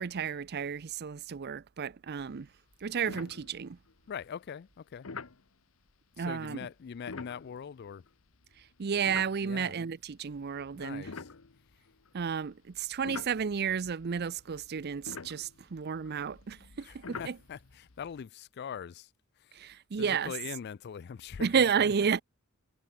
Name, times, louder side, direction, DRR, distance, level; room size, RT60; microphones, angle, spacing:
voice 1, 0.0-2.5 2.8-3.8 6.2-6.6 8.8-11.1 12.1-17.4 19.5-20.3 21.4-22.2, right 6 dB, 50° right, 0.5 m, -32 dB
sound 1, 2.2-2.4 2.7-2.8 3.1-3.9 5.0-5.4 7.0-9.8 10.4-12.2 12.8-18.2, left 4 dB, 75° left, 1.1 m, -46 dB
voice 2, 4.1-5.1 6.2-8.0 9.4-9.7 10.8-11.3 16.8-19.1 19.4-19.5 20.0-21.5, left 7 dB, 50° left, 0.4 m, -42 dB
head